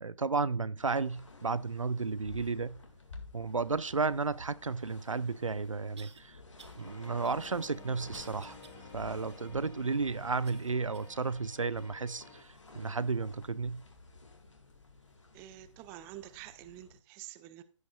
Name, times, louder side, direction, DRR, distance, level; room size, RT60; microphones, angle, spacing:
voice 1, 0.0-2.8 3.3-6.4 6.8-8.6 8.9-13.8, right 4 dB, 90° right, 0.5 m, -33 dB
sound 1, 0.8-17.0, left 3 dB, 70° left, 2.0 m, -53 dB
sound 2, 5.0-5.1 6.0-6.2 6.6-6.8 7.2-8.8 9.3-9.4 10.4-11.2 11.8-11.9 12.6-12.7, right 6 dB, 60° right, 0.9 m, -56 dB
sound 3, 6.8-12.4, left 3 dB, 25° left, 1.8 m, -54 dB
voice 2, 15.3-17.6, right 14 dB, 15° right, 0.4 m, -48 dB
15.5 x 5.3 x 2.3 m
figure-of-eight pair, 135°, 16 cm